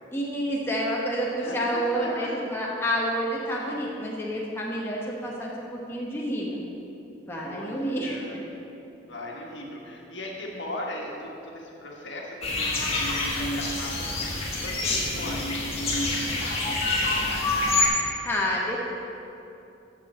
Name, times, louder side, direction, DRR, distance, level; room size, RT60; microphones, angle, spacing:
voice 1, 0.1-6.6 7.3-8.2 18.2-18.8, equal, 10° left, -4 dB, 1.1 m, -29 dB
voice 2, 1.4-2.4 3.6-3.9 7.3-8.4 9.1-14.3 14.6-17.5, left 1 dB, 70° left, -2 dB, 1.5 m, -38 dB
sound 1, 12.4-17.9, left 2 dB, 30° left, 1.6 m, -26 dB
7.4 x 6.7 x 7.5 m, 2.9 s
head